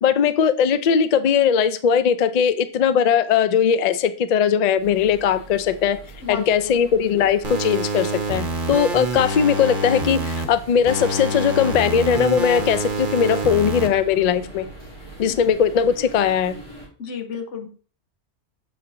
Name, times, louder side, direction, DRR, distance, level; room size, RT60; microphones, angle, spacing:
voice 1, 0.0-6.0 6.3-14.7 15.2-16.5, left 7 dB, 60° left, 12 dB, 0.4 m, -19 dB
sound 1, 4.8-16.9, right 1 dB, 25° left, 2.4 m, -42 dB
voice 2, 6.2-6.9 15.3-15.4 17.0-17.7, left 6 dB, 80° left, 5 dB, 1.3 m, -32 dB
sound 2, 7.4-10.4 10.9-13.9, right 2 dB, 45° right, 1.0 m, -26 dB
7.1 x 5.5 x 2.6 m, 0.40 s
omnidirectional pair, 1.2 m